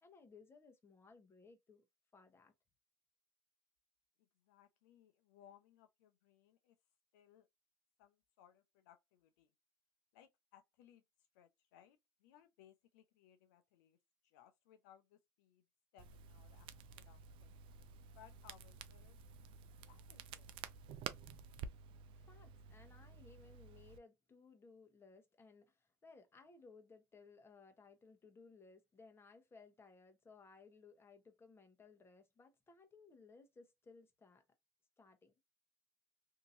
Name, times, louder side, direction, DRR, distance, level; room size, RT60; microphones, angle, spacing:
voice 1, 0.0-1.9 2.1-2.5 22.1-34.4 35.0-35.3, left 4 dB, 25° left, 1.1 m, -62 dB
voice 2, 4.2-6.8 7.1-7.5 8.0-9.5 10.1-11.0 11.3-14.0 14.2-15.6 15.9-17.5 18.1-19.2 19.9-20.6, left 10 dB, 80° left, 0.5 m, -66 dB
Crackle, 16.0-24.0, right 7 dB, 60° right, 0.5 m, -52 dB
2.8 x 2.8 x 2.6 m
supercardioid pair, 80°, 10 cm